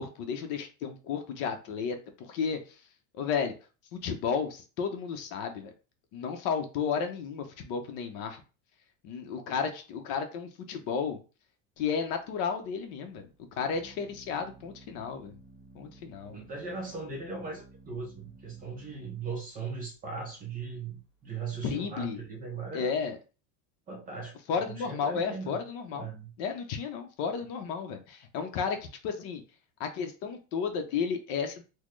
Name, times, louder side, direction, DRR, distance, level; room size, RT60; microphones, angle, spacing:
voice 1, 0.0-2.6 3.1-3.5 3.9-5.7 6.1-8.4 9.0-11.2 11.8-13.3 13.6-15.4 15.7-16.4 21.6-22.2 22.7-23.2 24.5-26.1 26.4-28.8 29.0-29.4 29.8-31.6, left 6 dB, 45° left, 6 dB, 0.7 m, -33 dB
Organ, 11.8-22.2, right 3 dB, 10° left, 0.8 m, -56 dB
voice 2, 16.3-23.0 23.9-25.6 26.0-26.3, right 4 dB, 20° right, 0 dB, 0.6 m, -39 dB
4.1 x 2.2 x 3.1 m, 0.33 s
supercardioid pair, 155°, 44 cm